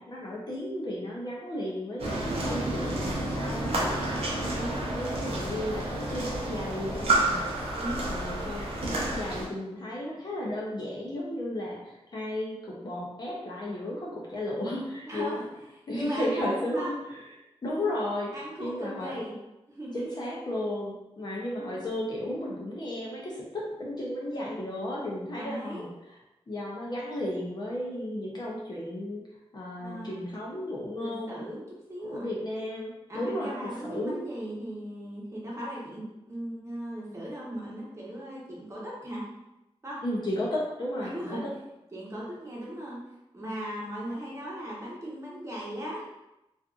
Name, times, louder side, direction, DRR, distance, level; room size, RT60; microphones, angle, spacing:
voice 1, 0.0-4.0 4.9-7.5 8.1-15.4 15.9-17.3 17.6-19.2 19.9-26.1 26.5-29.2 29.5-31.4 32.1-34.2 40.0-41.5, left 1 dB, 45° left, -4 dB, 0.6 m, -34 dB
sound 1, 2.0-9.5, right 1 dB, 75° right, 0.6 m, -30 dB
voice 2, 4.3-4.8 7.8-8.2 15.0-15.3 15.9-16.9 18.3-19.3 19.7-20.2 25.4-25.9 29.8-30.2 31.0-31.6 31.9-32.3 33.1-39.3 39.8-40.0 41.0-41.4 41.9-43.0 43.3-46.0, right 1 dB, 30° right, -6 dB, 0.9 m, -37 dB
2.5 x 2.5 x 2.4 m, 0.93 s
wide cardioid pair, 100°, 10 cm